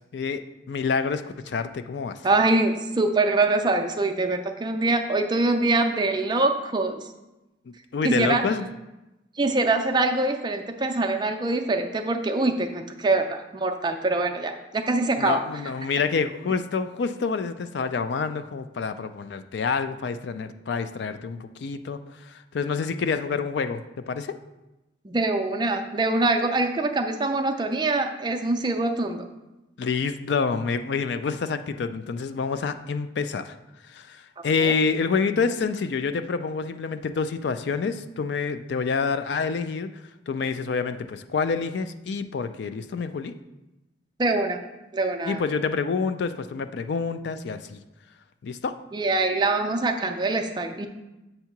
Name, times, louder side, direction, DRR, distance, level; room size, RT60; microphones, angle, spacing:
voice 1, 0.7-2.2 7.7-8.7 15.2-24.4 29.8-33.5 33.9-39.9 40.3-43.3 45.2-47.8 48.4-48.7, left 5 dB, 65° left, 10 dB, 0.4 m, -27 dB
voice 2, 2.2-7.0 8.0-8.4 9.4-15.4 25.0-29.2 34.6-34.7 44.2-44.6 44.9-45.4 48.9-50.9, right 2 dB, 25° right, 5 dB, 0.4 m, -24 dB
7.8 x 2.8 x 5.8 m, 0.99 s
head